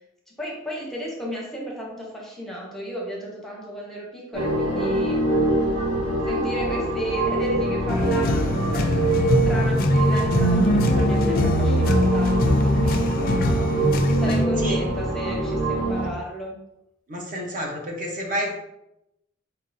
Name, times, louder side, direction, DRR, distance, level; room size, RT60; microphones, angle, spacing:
voice 1, 0.4-13.7 14.0-16.6, equal, ahead, -4 dB, 0.8 m, -34 dB
sound 1, 4.3-16.1, right 2 dB, 85° right, 1.6 m, -24 dB
sound 2, 7.9-14.4, left 1 dB, 45° left, 0.4 m, -22 dB
voice 2, 17.1-18.6, equal, 40° right, -1 dB, 0.9 m, -29 dB
4.4 x 3.6 x 2.6 m, 0.87 s
head